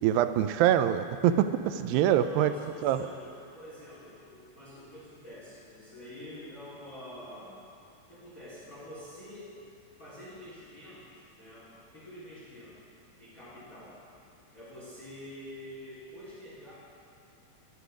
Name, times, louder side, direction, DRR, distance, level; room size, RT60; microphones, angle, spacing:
voice 1, 0.0-2.5 2.8-3.0, right 11 dB, 85° right, 10 dB, 2.3 m, -24 dB
voice 2, 2.1-7.6 8.1-9.6 9.9-12.8 13.2-14.0 14.5-16.7, left 1 dB, 25° left, -9 dB, 3.7 m, -47 dB
17.5 x 11.5 x 5.0 m, 2.5 s
omnidirectional pair, 4.2 m